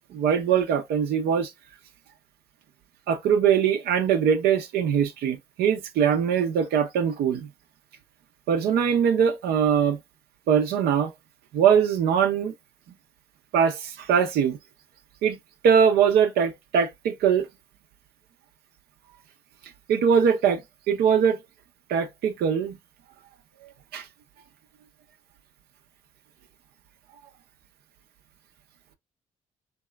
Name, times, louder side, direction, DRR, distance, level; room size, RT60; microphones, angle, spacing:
voice 1, 0.1-1.5 3.1-7.5 8.5-10.0 10.5-11.1 11.5-12.5 13.5-14.6 15.2-15.4 15.6-17.5 19.9-20.6 20.9-21.4 21.9-22.8 23.6-24.1, right 7 dB, 70° right, 0.6 m, -22 dB
2.7 x 2.3 x 2.2 m
hypercardioid pair, 50°, 17 cm